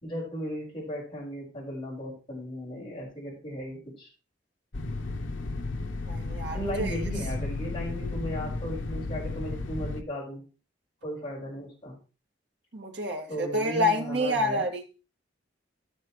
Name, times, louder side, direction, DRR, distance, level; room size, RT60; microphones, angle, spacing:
voice 1, 0.0-4.1 6.5-10.4 11.0-12.0 13.3-14.7, equal, 25° left, 5.0 m, -36 dB
sound 1, 4.7-10.0, left 2 dB, 80° left, 0.8 m, -33 dB
voice 2, 6.1-6.9 12.7-14.8, left 1 dB, 65° right, 2.0 m, -28 dB
16.5 x 6.5 x 3.1 m
head